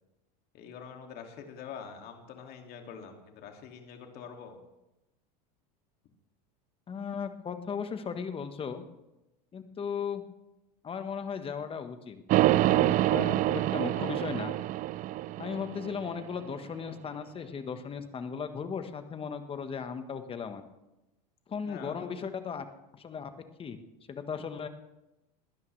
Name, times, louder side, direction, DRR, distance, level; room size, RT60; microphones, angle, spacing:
voice 1, 0.5-4.6 21.7-22.1, left 7 dB, 50° left, 3 dB, 2.4 m, -45 dB
voice 2, 6.9-8.8 9.5-10.2 10.8-12.2 12.5-14.6 15.4-20.6 21.5-22.6 22.9-23.3 23.6-23.8 24.1-24.7, left 6 dB, 25° left, 8 dB, 1.4 m, -36 dB
sound 1, 12.3-16.4, right 15 dB, 40° right, 0.4 m, -26 dB
20.5 x 12.5 x 3.3 m, 0.97 s
supercardioid pair, 105°, 21 cm